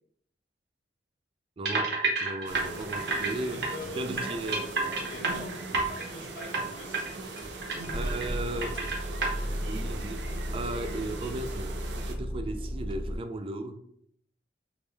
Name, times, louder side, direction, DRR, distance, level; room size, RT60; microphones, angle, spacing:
voice 1, 1.6-3.6 3.9-4.7 7.9-8.8 9.6-13.8, right 1 dB, 30° right, 0.3 m, -36 dB
sound 1, 1.6-3.3 3.6-3.7 4.2-6.0 6.4-6.6 6.9-7.1 7.4-8.3 8.6-9.3, right 3 dB, 70° right, 0.9 m, -29 dB
sound 2, 2.5-12.2, right 2 dB, 90° right, 0.6 m, -40 dB
Car / Engine starting / Idling, 2.6-3.3 3.6-4.4 5.1-5.2 5.3-5.4 5.7-6.0 7.0-13.1, equal, 25° left, 0.6 m, -36 dB
voice 2, 3.0-7.1 7.5-8.9, left 1 dB, 90° left, 1.2 m, -44 dB
3.3 x 2.5 x 3.4 m
head